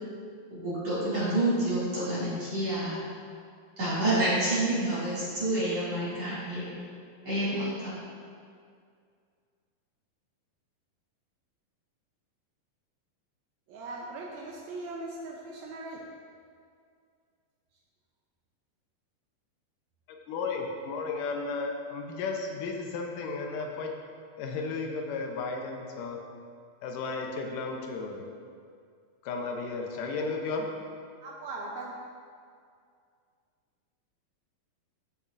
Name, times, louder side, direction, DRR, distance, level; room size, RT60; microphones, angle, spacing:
voice 1, 0.5-3.0 3.8-6.7 7.2-7.9, right 1 dB, 45° right, -12 dB, 3.4 m, -28 dB
voice 2, 13.7-16.0 31.2-31.9, right 2 dB, 90° right, -2 dB, 1.6 m, -39 dB
voice 3, 20.3-23.9 24.4-26.2 26.8-28.3 29.2-30.7, left 4 dB, 75° left, 2 dB, 2.2 m, -34 dB
14.5 x 7.0 x 2.6 m, 2.2 s
omnidirectional pair, 4.3 m